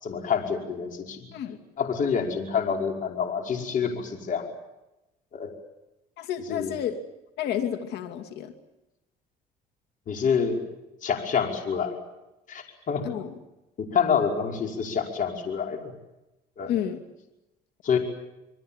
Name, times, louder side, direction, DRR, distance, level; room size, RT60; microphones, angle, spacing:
voice 1, 0.0-1.3 1.8-4.5 5.3-5.5 6.5-6.7 10.1-10.6 11.0-12.0 12.5-13.0 13.8-15.8 16.6-16.7 17.8-18.0, left 6 dB, 50° left, 3 dB, 5.4 m, -27 dB
voice 2, 6.2-7.0 7.4-8.5 13.0-13.3 16.7-17.0, left 9 dB, 80° left, 6 dB, 2.6 m, -30 dB
27.5 x 23.0 x 7.4 m, 0.96 s
cardioid pair, 110°, 17 cm